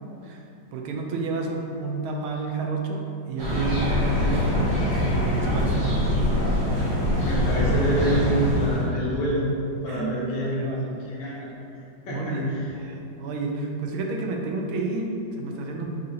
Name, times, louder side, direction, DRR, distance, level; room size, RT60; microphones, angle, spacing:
voice 1, 0.7-4.8 5.1-6.2 6.6-6.7 9.9-11.4 12.1-15.9, right 3 dB, 85° right, 1 dB, 1.4 m, -30 dB
sound 1, 3.4-8.8, left 1 dB, 30° right, 1.7 m, -23 dB
voice 2, 7.2-9.5 9.8-10.7 11.0-11.6 12.1-12.4, equal, 65° left, -6 dB, 1.3 m, -27 dB
4.1 x 3.7 x 2.8 m, 2.6 s
omnidirectional pair, 2.2 m